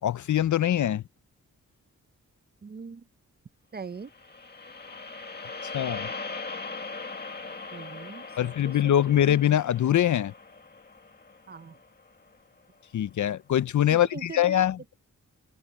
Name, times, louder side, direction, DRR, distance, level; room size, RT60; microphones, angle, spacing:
voice 1, 0.0-1.0 5.7-6.1 8.4-10.3 12.9-14.8, left 11 dB, 65° left, 0.5 m, -23 dB
voice 2, 2.6-3.0 3.7-4.1 7.7-9.2 11.5-11.8 13.9-14.7, right 5 dB, 30° right, 0.6 m, -41 dB
sound 1, 4.0-12.4, left 3 dB, 30° left, 1.9 m, -40 dB
open air
wide cardioid pair, 120°, 32 cm